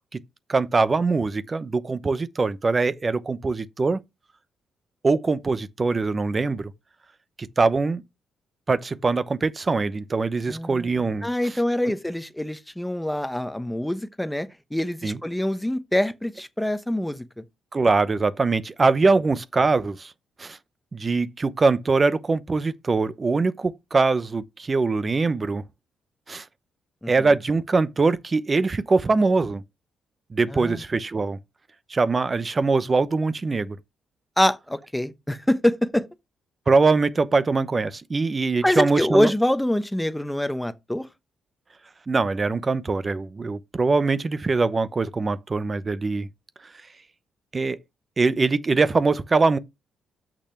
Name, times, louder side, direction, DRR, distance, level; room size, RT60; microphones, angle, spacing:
voice 1, 0.5-4.0 5.0-6.7 7.4-8.0 8.7-11.3 15.0-15.2 17.7-20.1 20.4-20.6 20.9-25.6 26.3-26.4 27.1-29.6 30.3-31.4 31.9-33.8 36.7-39.3 42.1-46.3 47.5-47.8 48.2-49.6, right 3 dB, 30° right, 0.8 m, -22 dB
voice 2, 10.5-10.9 11.2-17.4 27.0-27.1 30.5-30.8 34.4-36.0 38.6-41.1, left 1 dB, 5° left, 0.9 m, -25 dB
6.6 x 5.9 x 5.8 m
cardioid pair, 95°, 0 cm